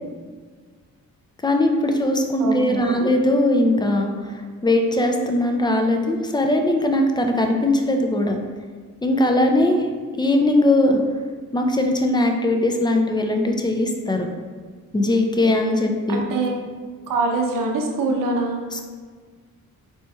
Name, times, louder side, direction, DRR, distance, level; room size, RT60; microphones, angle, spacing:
voice 1, 1.4-8.4 9.0-9.9 10.1-11.0 11.5-14.3 14.9-16.2, left 1 dB, 15° left, 3 dB, 0.3 m, -20 dB
voice 2, 2.4-3.1 16.1-16.5 17.1-18.6, right 3 dB, 70° right, 1 dB, 0.6 m, -24 dB
4.2 x 2.9 x 2.2 m, 1.6 s
cardioid pair, 85°, 34 cm